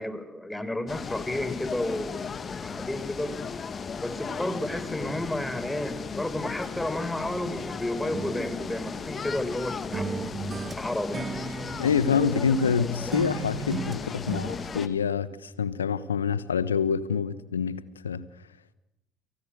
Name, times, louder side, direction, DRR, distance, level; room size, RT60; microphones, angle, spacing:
voice 1, 0.0-3.3 4.0-10.2 10.7-11.4, left 1 dB, 10° left, 4.6 m, -32 dB
sound 1, 0.9-14.9, left 5 dB, 35° left, 2.1 m, -36 dB
sound 2, 8.1-9.6 9.9-12.8 13.1-14.5, right 5 dB, 30° right, 2.2 m, -36 dB
voice 2, 11.8-18.3, left 6 dB, 80° left, 1.1 m, -26 dB
30.0 x 25.0 x 7.9 m
figure-of-eight pair, 55°, 0 cm